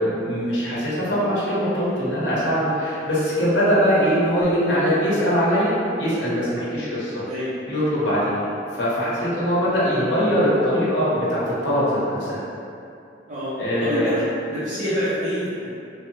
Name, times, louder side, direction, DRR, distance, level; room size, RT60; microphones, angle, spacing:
voice 1, 0.0-7.2 7.7-8.5 8.8-12.4 13.6-14.1, equal, 75° left, -9 dB, 0.9 m, -22 dB
voice 2, 7.2-7.5 13.3-13.5 13.8-14.2 14.5-15.7, equal, 40° right, -13 dB, 0.6 m, -26 dB
3.2 x 2.0 x 3.1 m, 2.6 s
head